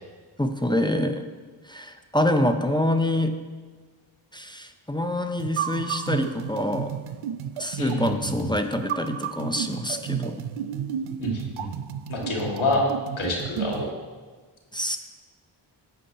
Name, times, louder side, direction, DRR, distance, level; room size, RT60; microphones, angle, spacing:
voice 1, 0.4-1.2 1.7-3.3 4.3-6.9 7.6-10.4 14.7-15.0, left 1 dB, 10° left, 6 dB, 0.6 m, -26 dB
sound 1, 5.4-13.9, right 9 dB, 75° right, 0.6 m, -32 dB
voice 2, 7.8-8.3 11.2-11.7 12.1-12.8 13.2-13.9, left 2 dB, 70° left, -1 dB, 2.1 m, -27 dB
11.0 x 7.7 x 2.9 m, 1.4 s
cardioid pair, 45°, 49 cm